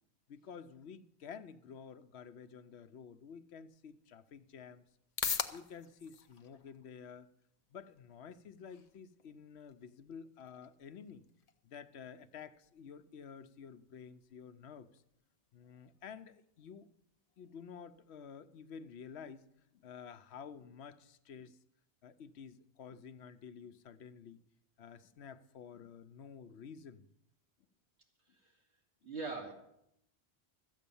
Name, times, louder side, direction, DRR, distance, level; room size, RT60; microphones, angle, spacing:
voice 1, 0.3-4.9 5.5-7.3 7.7-11.2 11.6-15.0 15.5-16.9 17.4-19.5 19.7-21.6 22.0-24.4 24.8-27.1, left 7 dB, 80° left, 1.0 m, -51 dB
sound 1, 3.7-20.7, left 6 dB, 40° left, 0.7 m, -48 dB
voice 2, 29.0-29.5, right 3 dB, 80° right, 2.5 m, -41 dB
13.5 x 8.3 x 7.0 m
omnidirectional pair, 1.1 m